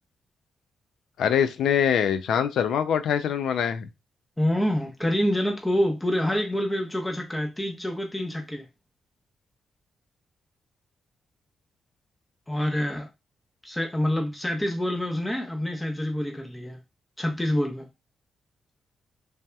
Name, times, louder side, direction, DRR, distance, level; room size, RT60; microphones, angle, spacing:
voice 1, 1.2-3.9, left 8 dB, 85° left, 0.3 m, -24 dB
voice 2, 4.4-8.6 12.5-13.1 13.6-16.8 17.2-17.8, left 1 dB, 15° left, 0.7 m, -27 dB
3.3 x 2.7 x 2.2 m
cardioid pair, 65°, 0 cm